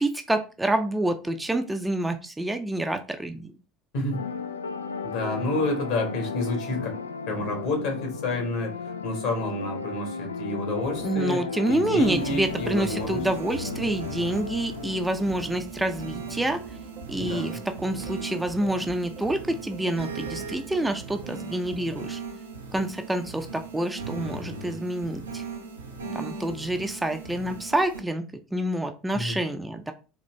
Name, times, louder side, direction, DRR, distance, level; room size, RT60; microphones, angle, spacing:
voice 1, 0.0-3.5 11.0-16.6 17.1-22.2 22.7-25.4 26.1-29.9, right 1 dB, 10° right, 6 dB, 0.5 m, -27 dB
voice 2, 3.9-4.3 5.0-6.9 7.3-8.7 9.0-11.4 11.7-13.2 17.2-17.6 29.1-29.4, left 2 dB, 60° left, 2 dB, 1.6 m, -29 dB
sound 1, 4.1-15.5, left 5 dB, 80° left, 0.3 m, -34 dB
sound 2, 10.8-22.0, right 5 dB, 45° right, 0.8 m, -46 dB
sound 3, 12.0-28.0, right 4 dB, 80° right, 0.6 m, -38 dB
4.0 x 2.9 x 3.1 m, 0.33 s
figure-of-eight pair, 70°, 0 cm